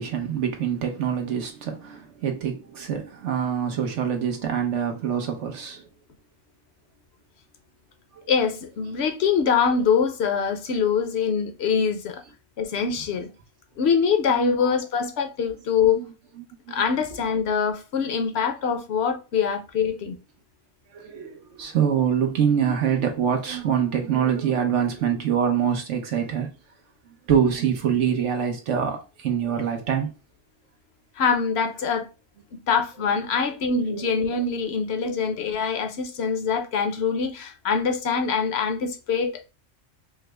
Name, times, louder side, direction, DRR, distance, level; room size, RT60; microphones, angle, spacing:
voice 1, 0.0-5.8 8.1-8.2 14.3-14.8 15.8-16.0 16.4-16.8 20.9-26.5 27.3-30.1 33.9-34.1 35.0-35.1, right 8 dB, 70° right, 1.1 m, -25 dB
voice 2, 8.3-12.2 12.6-13.3 13.8-16.0 16.7-20.2 31.2-32.1 32.7-39.3, left 6 dB, 60° left, 0.9 m, -24 dB
4.7 x 2.1 x 3.3 m
omnidirectional pair, 1.3 m